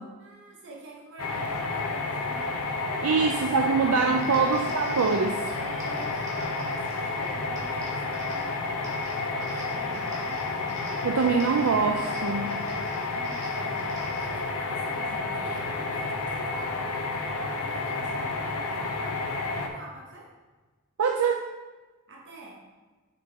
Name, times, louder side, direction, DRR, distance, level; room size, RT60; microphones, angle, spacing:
voice 1, 0.2-2.6 3.0-3.8 4.0-4.6 5.5-10.9 13.1-13.9 14.2-20.3 22.1-22.6, right 3 dB, 60° right, -3 dB, 1.3 m, -46 dB
sound 1, 1.2-19.7, left 3 dB, 80° left, 0.8 m, -30 dB
voice 2, 3.0-5.5 11.0-12.6 21.0-21.5, right 5 dB, 80° right, 3 dB, 0.5 m, -24 dB
sound 2, 4.2-14.4, right 1 dB, 15° right, 1.9 m, -49 dB
6.7 x 5.2 x 4.1 m, 1.3 s
head